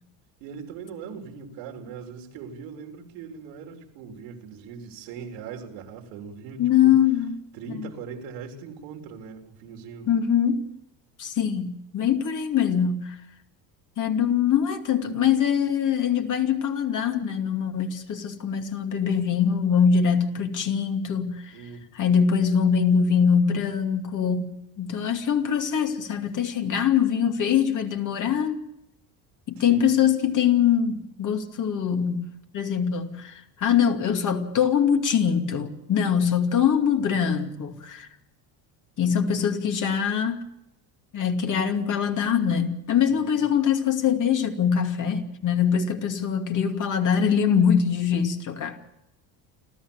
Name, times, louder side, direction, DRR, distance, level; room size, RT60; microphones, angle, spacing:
voice 1, 0.4-7.0 7.5-10.1 21.5-21.8 29.6-29.9 43.0-43.4, right 6 dB, 90° right, 3.8 m, -40 dB
voice 2, 6.6-7.4 7.7-7.9 10.1-10.7 11.2-13.1 14.0-21.6 21.9-28.6 29.5-32.3 32.5-38.1 39.0-40.5 41.1-48.8, left 7 dB, 45° left, 2.6 m, -23 dB
29.5 x 13.5 x 7.1 m
cardioid pair, 130°, 44 cm